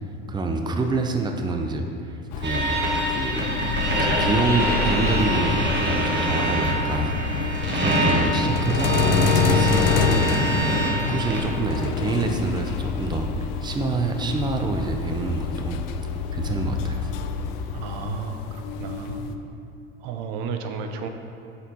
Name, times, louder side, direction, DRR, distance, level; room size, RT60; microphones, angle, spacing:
voice 1, 0.3-2.8 3.1-3.6 3.9-15.8 16.3-17.1, right 2 dB, 15° right, 4 dB, 0.6 m, -27 dB
sound 1, 2.3-19.4, left 7 dB, 65° left, 0.5 m, -28 dB
sound 2, 2.4-11.4, right 1 dB, 35° right, 1.5 m, -24 dB
Explosion, 4.6-9.3, left 1 dB, 30° left, 1.6 m, -34 dB
voice 2, 17.7-19.2 20.0-21.1, right 5 dB, 65° right, 6 dB, 0.6 m, -33 dB
6.5 x 4.5 x 4.6 m, 2.6 s
hypercardioid pair, 75°, 30 cm